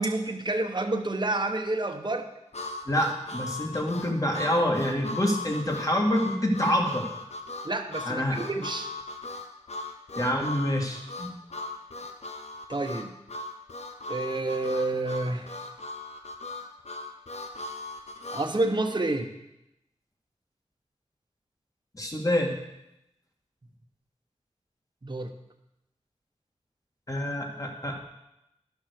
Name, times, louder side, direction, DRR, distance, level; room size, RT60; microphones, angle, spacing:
voice 1, 0.0-2.3 7.6-8.9 12.7-13.1 14.1-15.5 18.3-19.3 25.0-25.3, right 2 dB, 35° right, 4 dB, 1.2 m, -29 dB
Harmonica, 2.5-18.5, left 2 dB, 60° left, 1.1 m, -38 dB
voice 2, 2.9-7.1 8.1-8.4 10.1-11.3 21.9-22.5 27.1-28.0, equal, 30° left, 1 dB, 2.3 m, -27 dB
12.0 x 6.0 x 6.6 m, 0.88 s
cardioid pair, 45°, 13 cm